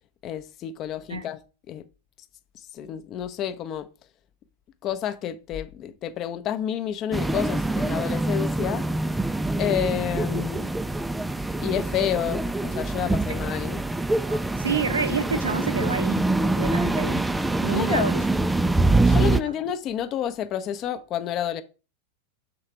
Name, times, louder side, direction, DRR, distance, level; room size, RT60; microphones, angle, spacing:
voice 1, 0.2-1.4 1.7-1.8 2.7-3.9 4.8-8.8 9.6-10.7 11.6-13.8 17.7-18.1 19.0-21.6, left 10 dB, 35° left, 0.6 m, -29 dB
sound 1, 7.1-19.4, right 2 dB, 5° right, 0.3 m, -25 dB
voice 2, 14.2-17.2 17.6-18.2 19.1-19.5, right 5 dB, 70° right, 0.7 m, -29 dB
6.5 x 3.8 x 4.5 m
figure-of-eight pair, 90°, 0 cm